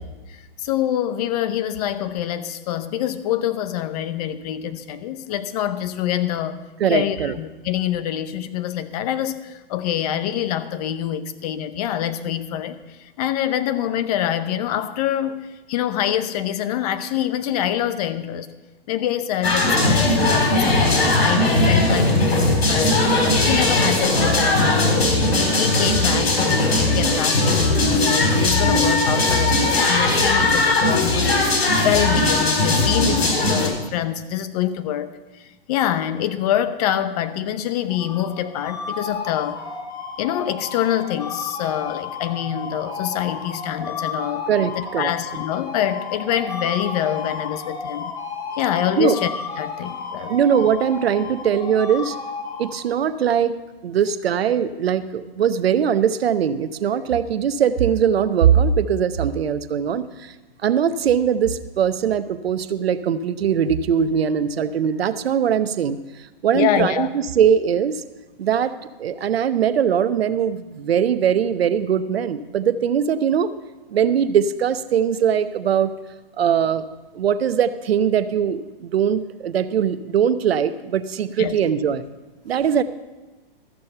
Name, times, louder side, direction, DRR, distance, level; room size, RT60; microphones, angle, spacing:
voice 1, 0.3-18.5 18.9-23.0 23.5-25.2 25.6-39.6 40.2-44.5 44.8-48.1 48.6-50.4 66.5-67.1 81.4-81.6, left 11 dB, 40° left, 11 dB, 0.8 m, -25 dB
voice 2, 6.8-7.4 44.5-45.1 49.0-49.2 50.3-52.2 52.6-53.6 53.8-60.3 60.6-66.0 66.4-67.1 67.4-68.0 68.4-73.5 73.9-75.9 76.4-76.9 77.1-82.0 82.4-82.8, right 8 dB, 85° right, 12 dB, 0.9 m, -21 dB
sound 1, 19.4-33.7, left 2 dB, 80° left, 4.0 m, -18 dB
sound 2, 37.9-53.2, left 5 dB, 15° left, 1.2 m, -33 dB
13.5 x 7.1 x 6.7 m, 1.1 s
hypercardioid pair, 145°, 30 cm